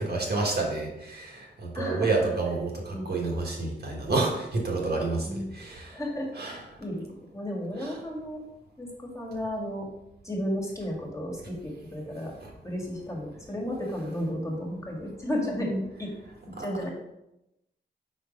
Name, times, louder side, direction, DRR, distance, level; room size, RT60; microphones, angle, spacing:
voice 1, 0.0-6.0 6.4-6.5 7.8-7.9 16.6-16.7, right 3 dB, 55° right, -1 dB, 1.6 m, -29 dB
voice 2, 1.7-2.2 2.9-3.1 5.2-5.5 5.9-7.0 7.3-8.4 8.8-9.9 10.2-12.3 12.6-16.1 16.6-16.9, equal, 15° left, -2 dB, 1.9 m, -33 dB
4.6 x 4.3 x 5.2 m, 0.89 s
cardioid pair, 65°, 19 cm